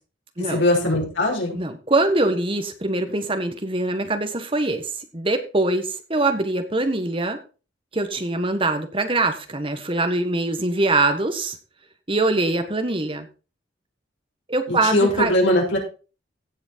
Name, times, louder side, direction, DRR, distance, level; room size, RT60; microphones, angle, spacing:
voice 1, 0.4-1.6 14.7-15.8, left 1 dB, 85° left, -1 dB, 6.0 m, -20 dB
voice 2, 1.5-7.4 7.9-11.6 12.1-13.3 14.5-15.3, right 2 dB, 30° right, 7 dB, 1.5 m, -23 dB
16.5 x 6.3 x 4.5 m, 0.34 s
head